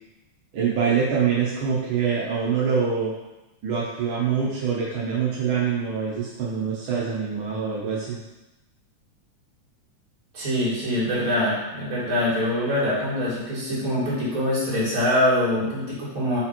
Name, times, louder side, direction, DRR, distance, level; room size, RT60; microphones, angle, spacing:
voice 1, 0.5-3.1 3.6-8.2, right 6 dB, 75° right, -6 dB, 1.2 m, -25 dB
voice 2, 10.3-16.4, left 1 dB, 30° right, -8 dB, 2.0 m, -24 dB
5.2 x 4.2 x 4.3 m, 1.0 s
omnidirectional pair, 3.6 m